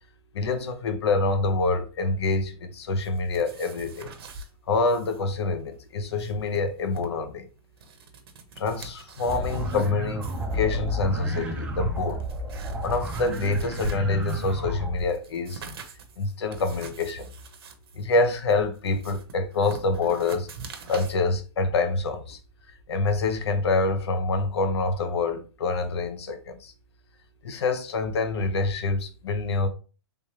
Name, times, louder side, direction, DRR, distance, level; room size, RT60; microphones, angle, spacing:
voice 1, 0.3-4.1 4.7-7.5 8.6-12.2 12.8-15.6 16.2-17.3 18.0-20.5 20.9-22.4 22.9-26.7 27.4-29.7, left 3 dB, 85° left, 0.7 m, -26 dB
sound 1, 3.0-4.5 4.9-5.2 5.5-5.6 6.0-7.1 7.6-9.9 10.2-10.6 11.3-11.4 11.9-14.6 15.0-21.2, right 2 dB, 70° right, 0.7 m, -42 dB
sound 2, 9.3-15.0, equal, 10° right, 0.4 m, -31 dB
3.4 x 3.2 x 2.8 m
hypercardioid pair, 160°, 14 cm